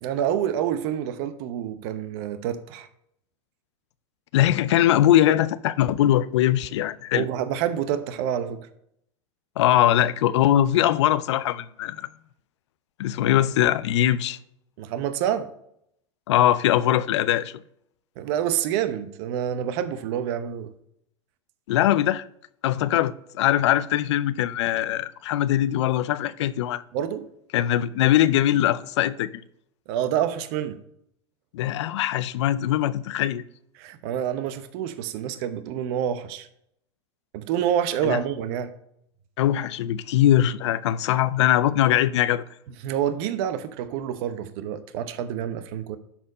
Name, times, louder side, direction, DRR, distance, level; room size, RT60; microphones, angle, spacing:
voice 1, 0.0-2.9 7.1-8.7 14.8-15.5 18.2-20.7 26.9-27.3 29.9-30.8 33.8-36.5 37.3-38.7 42.8-46.0, right 10 dB, 60° right, 0.9 m, -27 dB
voice 2, 4.3-7.3 9.6-12.1 13.0-14.4 16.3-17.5 21.7-22.2 22.6-26.8 27.5-29.4 31.5-33.4 38.0-38.2 39.4-42.4, left 12 dB, 75° left, 0.5 m, -21 dB
11.5 x 4.2 x 4.1 m
hypercardioid pair, 100°, 15 cm